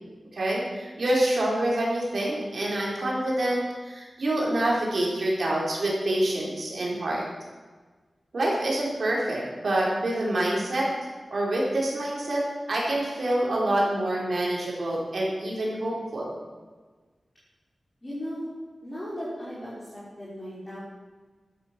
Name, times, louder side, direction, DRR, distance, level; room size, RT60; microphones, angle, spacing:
voice 1, 0.3-7.2 8.3-10.9 11.3-12.4 12.7-16.3, right 1 dB, 65° right, -3 dB, 4.7 m, -26 dB
voice 2, 18.0-18.5 18.8-20.8, equal, 15° left, -9 dB, 4.9 m, -36 dB
13.0 x 11.5 x 6.2 m, 1.4 s
wide cardioid pair, 100°, 0 cm